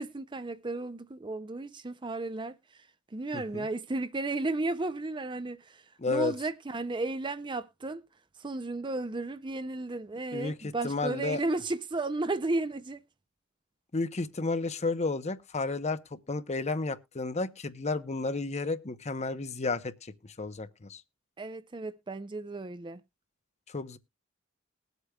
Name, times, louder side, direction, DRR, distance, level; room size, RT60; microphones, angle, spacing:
voice 1, 0.0-8.0 8.4-13.0 21.4-23.0, right 2 dB, 25° right, 0.5 m, -34 dB
voice 2, 3.3-3.7 6.0-6.3 10.3-11.4 13.9-21.0 23.7-24.0, left 3 dB, 35° left, 0.8 m, -32 dB
20.5 x 8.1 x 2.2 m
head